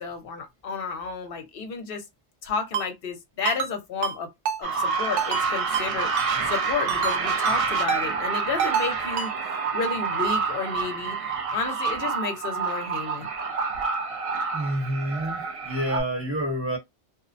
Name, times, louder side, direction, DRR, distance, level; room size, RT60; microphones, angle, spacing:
voice 1, 0.0-2.0 2.4-4.3 4.6-11.2 11.5-13.3, left 5 dB, 60° left, 0.8 m, -32 dB
Ringtone, 2.7-2.9 3.5-3.7 4.0-4.2 4.5-4.6 5.2-5.4 5.7-5.9 6.2-6.3 6.9-7.2 7.5-7.6 7.9-8.0 8.6-8.9 9.2-9.3, right 8 dB, 85° right, 0.9 m, -27 dB
sound 1, 4.6-16.0, right 5 dB, 60° right, 0.3 m, -28 dB
voice 2, 14.5-16.8, right 1 dB, 10° right, 0.9 m, -28 dB
2.5 x 2.0 x 2.5 m
omnidirectional pair, 1.2 m